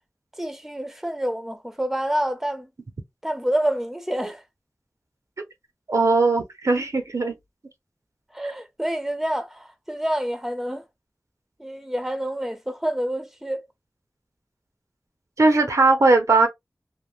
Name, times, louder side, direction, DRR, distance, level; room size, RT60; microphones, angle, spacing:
voice 1, 0.4-2.7 3.2-4.4 8.3-10.8 11.6-13.7, right 1 dB, 5° right, 0.6 m, -27 dB
voice 2, 5.9-7.3 15.4-16.5, right 3 dB, 75° right, 0.7 m, -19 dB
3.3 x 2.1 x 2.4 m
wide cardioid pair, 45°, 5 cm